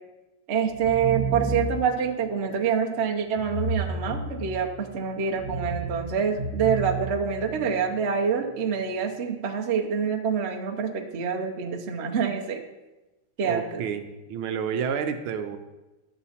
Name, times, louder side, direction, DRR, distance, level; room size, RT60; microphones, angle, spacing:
voice 1, 0.5-12.6 13.4-13.6, right 6 dB, 45° right, 2 dB, 0.8 m, -26 dB
sound 1, 0.7-2.0 3.4-4.8 5.3-7.8, right 2 dB, ahead, 1.2 m, -32 dB
voice 2, 13.4-15.6, right 7 dB, 75° right, 7 dB, 1.5 m, -30 dB
11.0 x 6.9 x 4.2 m, 1.1 s
omnidirectional pair, 2.4 m